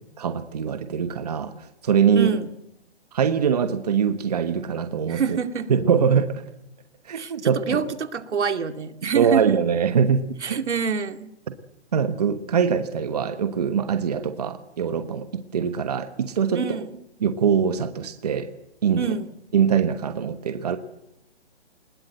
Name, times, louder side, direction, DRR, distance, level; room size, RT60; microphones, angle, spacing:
voice 1, 0.2-2.4 3.1-5.4 5.7-6.4 7.0-7.8 9.0-10.6 11.9-16.6 17.2-18.5 18.8-19.1 19.5-20.8, right 7 dB, 35° right, 9 dB, 1.2 m, -23 dB
voice 2, 2.1-2.5 5.1-5.7 7.2-9.6 10.4-11.3 16.5-16.9 19.0-19.3, right 6 dB, 85° right, 8 dB, 2.4 m, -26 dB
21.5 x 20.5 x 7.8 m, 0.82 s
hypercardioid pair, 180°, 34 cm